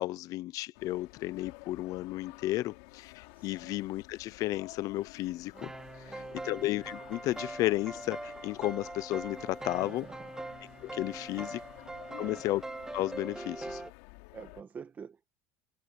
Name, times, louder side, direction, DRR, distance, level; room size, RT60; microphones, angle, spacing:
voice 1, 0.0-5.7 6.0-10.1 10.8-11.6 12.2-12.6 12.9-13.8, left 17 dB, 55° left, 0.6 m, -33 dB
sound 1, 0.7-14.6, left 28 dB, 80° left, 5.3 m, -52 dB
voice 2, 3.3-3.7 6.1-6.5 9.8-10.3 11.3-11.6 12.2-12.4 14.3-15.3, right 6 dB, 25° right, 1.9 m, -48 dB
sound 2, 5.5-13.9, right 2 dB, 10° right, 1.2 m, -42 dB
cardioid pair, 135°, 7 cm